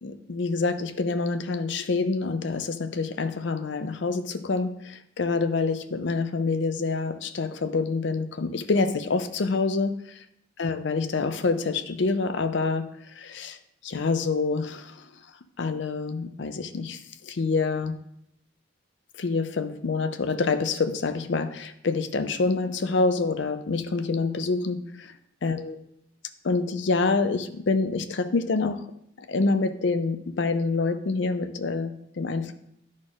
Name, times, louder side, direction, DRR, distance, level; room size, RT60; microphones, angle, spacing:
voice 1, 0.0-10.2 10.6-13.6 13.8-15.0 15.6-17.9 19.2-25.1 25.4-25.8 26.4-28.8 29.2-32.5, left 3 dB, 60° left, 11 dB, 0.5 m, -27 dB
12.0 x 4.2 x 2.5 m, 0.75 s
head